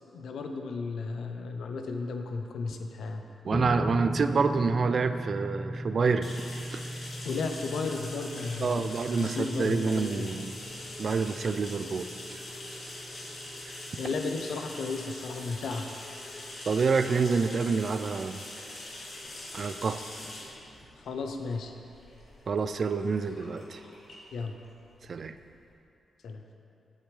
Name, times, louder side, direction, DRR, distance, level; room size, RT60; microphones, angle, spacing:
voice 1, 0.1-3.2 7.2-10.3 14.0-15.9 21.1-21.7 24.3-24.5 26.2-26.4, left 4 dB, 80° left, 4 dB, 0.7 m, -34 dB
voice 2, 3.4-6.4 6.7-6.8 8.6-10.5 11.0-12.1 16.7-18.4 19.5-20.0 22.5-23.8 25.1-25.3, right 5 dB, 55° right, 10 dB, 0.4 m, -27 dB
sound 1, 3.5-16.0, equal, 15° left, 0.3 m, -39 dB
sound 2, 6.2-25.6, left 1 dB, 65° left, 1.9 m, -43 dB
8.6 x 8.1 x 3.3 m, 2.6 s
cardioid pair, 65°, 0 cm